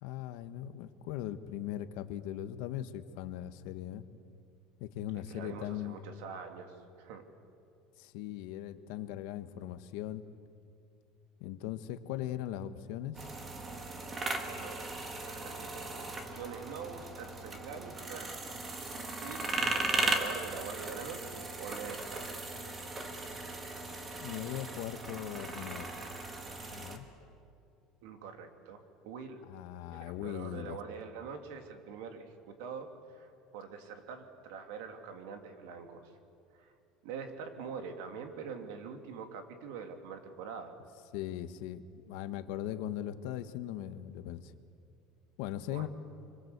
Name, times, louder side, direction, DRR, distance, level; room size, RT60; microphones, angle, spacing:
voice 1, 0.0-4.0 4.8-6.0 8.0-10.2 11.4-13.3 24.2-25.9 26.7-27.0 29.5-30.8 41.1-44.5 45.4-45.9, left 12 dB, 60° left, 11 dB, 1.2 m, -39 dB
voice 2, 5.3-7.2 14.4-14.8 15.2-15.9 16.3-18.3 19.2-22.3 28.0-29.4 29.9-36.1 36.5-36.7 37.0-40.8 45.7-45.9, right 6 dB, 70° right, 6 dB, 2.8 m, -44 dB
sound 1, 13.1-27.0, right 2 dB, 15° right, 1.7 m, -37 dB
25.5 x 25.0 x 8.1 m, 2.5 s
cardioid pair, 180°, 0 cm